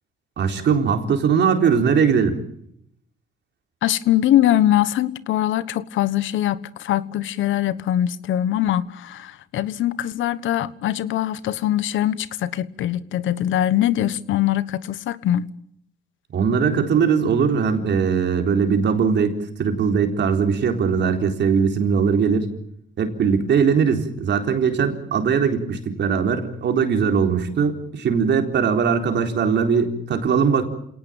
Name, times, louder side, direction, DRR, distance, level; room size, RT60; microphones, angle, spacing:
voice 1, 0.4-2.4 16.3-22.5 23.0-30.6, right 6 dB, 60° right, 4.0 m, -20 dB
voice 2, 3.8-15.5, left 12 dB, 80° left, 1.2 m, -22 dB
28.0 x 18.5 x 9.0 m
cardioid pair, 90°, 20 cm